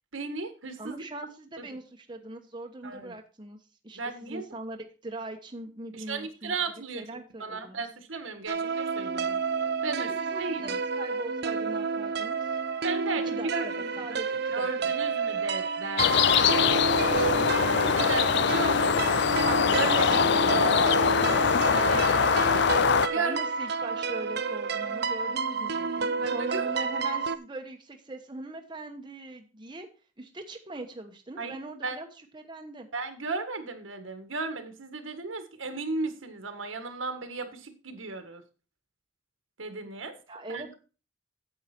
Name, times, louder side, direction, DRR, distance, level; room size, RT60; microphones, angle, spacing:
voice 1, 0.1-1.0 1.6-1.7 2.8-3.1 4.0-4.5 5.9-9.4 9.8-10.1 10.4-10.8 12.8-14.2 14.5-16.5 17.1-19.1 19.4-20.8 21.7-22.1 23.1-23.4 26.1-26.9 31.4-31.6 31.8-32.0 32.9-38.4 39.6-40.2 40.5-40.7, right 4 dB, 85° right, 8 dB, 1.7 m, -35 dB
voice 2, 0.8-3.6 3.8-6.6 6.9-7.8 10.3-12.6 13.3-14.7 14.9-15.0 23.1-29.9 30.2-32.1 32.3-32.9 40.3-40.7, right 2 dB, 25° right, 4 dB, 1.1 m, -41 dB
sound 1, 8.5-27.4, right 4 dB, 55° right, 0.7 m, -30 dB
sound 2, 16.0-23.1, left 6 dB, 60° left, 0.5 m, -23 dB
9.4 x 7.8 x 4.4 m, 0.35 s
head